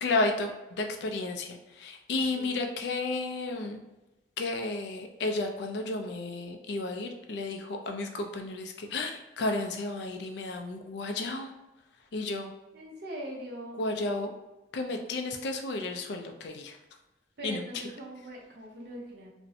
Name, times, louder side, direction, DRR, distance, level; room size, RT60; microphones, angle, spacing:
voice 1, 0.0-3.8 4.4-11.5 12.1-12.5 13.8-14.3 14.7-16.8 17.4-17.6, left 2 dB, 70° left, 4 dB, 0.4 m, -32 dB
voice 2, 2.2-2.7 12.7-13.8 17.4-19.3, right 1 dB, 65° right, -2 dB, 0.7 m, -42 dB
2.5 x 2.0 x 2.6 m, 1.0 s
head